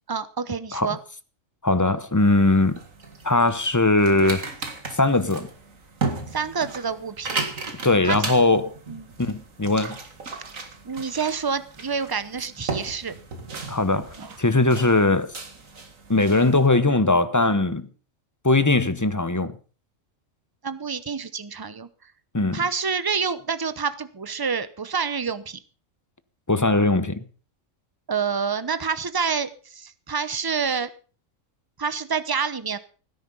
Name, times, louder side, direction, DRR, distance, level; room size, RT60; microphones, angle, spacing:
voice 1, 0.1-1.0 6.3-7.4 8.0-8.2 8.9-9.0 10.8-13.1 14.2-14.4 20.6-21.9 22.5-25.6 28.1-30.9 31.8-32.8, right 6 dB, 20° right, 0.8 m, -28 dB
voice 2, 1.6-2.8 3.2-4.5 4.9-5.5 7.8-8.7 9.2-10.0 13.7-15.3 16.1-17.9 18.4-19.5 22.3-22.6 26.5-27.2, left 2 dB, 15° left, 0.7 m, -20 dB
sound 1, 2.2-16.7, right 4 dB, 90° right, 2.5 m, -35 dB
17.0 x 10.0 x 5.4 m
omnidirectional pair, 1.4 m